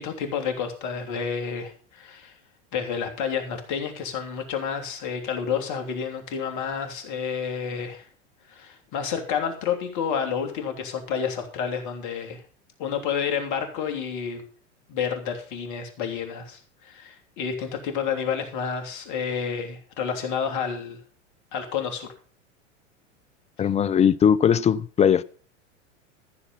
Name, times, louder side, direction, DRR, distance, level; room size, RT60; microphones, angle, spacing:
voice 1, 0.0-2.4 2.7-8.1 8.5-12.4 12.8-14.4 14.9-21.0 21.5-22.1, left 7 dB, 50° left, 3.2 m, -30 dB
voice 2, 23.6-25.2, left 8 dB, 20° left, 0.5 m, -19 dB
14.5 x 7.2 x 5.5 m
hypercardioid pair, 95°, 38 cm